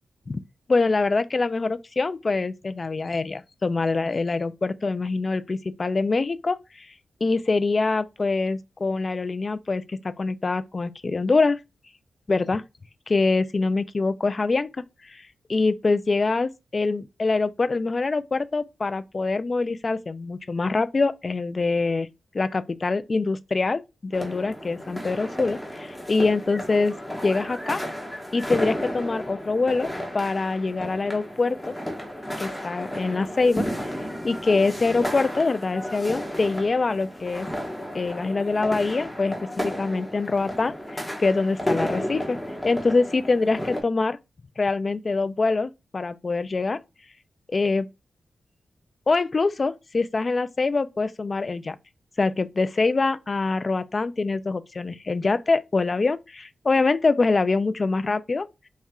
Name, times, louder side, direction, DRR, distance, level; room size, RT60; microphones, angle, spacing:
voice 1, 0.7-6.9 7.2-11.6 12.3-12.6 13.1-14.7 15.1-15.2 15.5-22.1 22.3-26.9 27.2-27.8 28.3-29.9 30.1-31.7 32.4-33.7 34.2-37.5 37.9-42.4 42.6-44.2 44.6-46.8 47.5-47.9 49.1-51.8 52.2-58.5, left 3 dB, 35° left, 0.3 m, -24 dB
sound 1, 24.1-43.8, equal, 5° left, 1.1 m, -33 dB
4.2 x 2.4 x 3.5 m
wide cardioid pair, 120°, 0 cm